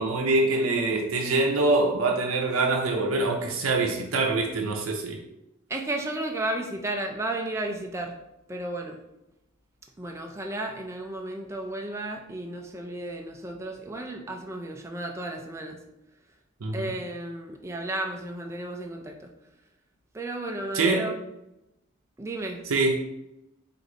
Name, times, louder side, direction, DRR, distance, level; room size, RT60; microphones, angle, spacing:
voice 1, 0.0-5.2 16.6-16.9 20.7-21.1 22.7-22.9, right 3 dB, 85° right, 1 dB, 0.6 m, -24 dB
voice 2, 5.7-8.2 8.5-9.0 10.0-15.8 16.7-19.2 20.1-21.2 22.2-22.6, right 1 dB, 15° right, 2 dB, 0.4 m, -33 dB
4.8 x 2.6 x 3.8 m, 0.89 s
head